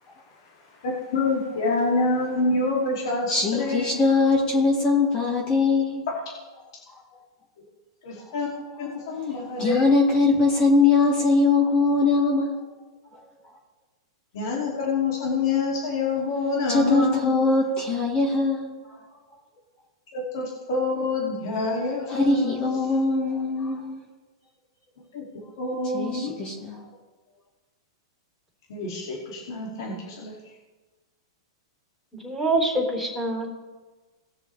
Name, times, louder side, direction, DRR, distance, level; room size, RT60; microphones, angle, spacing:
voice 1, 0.8-4.0 8.0-8.5 8.8-9.9 14.3-17.3 20.1-22.7 25.1-25.2 25.6-26.4 28.7-30.3, left 3 dB, 65° left, -3 dB, 2.7 m, -27 dB
voice 2, 3.3-6.0 9.2-9.3 9.6-12.6 13.1-13.2 16.7-19.0 22.1-24.0 25.9-26.8, left 3 dB, 30° left, -2 dB, 2.8 m, -22 dB
voice 3, 32.2-33.6, right 2 dB, ahead, -3 dB, 3.7 m, -25 dB
19.5 x 6.6 x 3.3 m, 1.3 s
hypercardioid pair, 130°, 2 cm